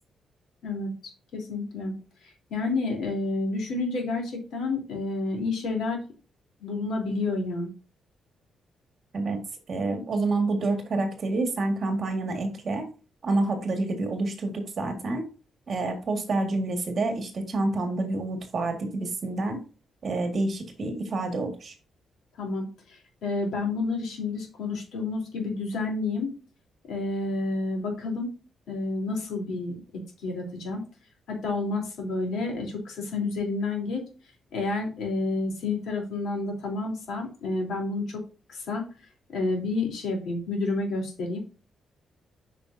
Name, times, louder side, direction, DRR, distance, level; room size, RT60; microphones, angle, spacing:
voice 1, 1.3-6.0 6.6-7.7 22.4-26.3 26.9-28.3 28.7-30.8 31.3-34.0 34.5-38.2 38.5-38.9 39.3-41.4, left 3 dB, 70° left, 1 dB, 3.3 m, -30 dB
voice 2, 9.7-12.9 13.2-15.3 15.7-19.6 20.0-21.7, right 2 dB, 40° right, 5 dB, 1.7 m, -28 dB
8.5 x 5.8 x 2.7 m, 0.35 s
cardioid pair, 160°, 0 cm